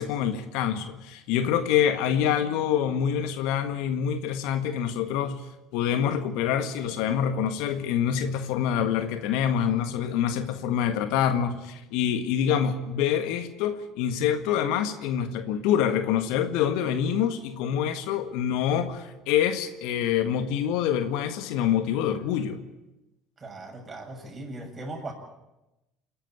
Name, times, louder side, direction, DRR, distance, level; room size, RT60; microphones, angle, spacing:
voice 1, 0.0-5.4 5.7-22.6, left 9 dB, 70° left, 9 dB, 1.7 m, -26 dB
voice 2, 23.4-25.1, right 2 dB, 30° right, 2 dB, 7.1 m, -38 dB
28.5 x 11.0 x 9.5 m, 0.97 s
hypercardioid pair, 65°, 0 cm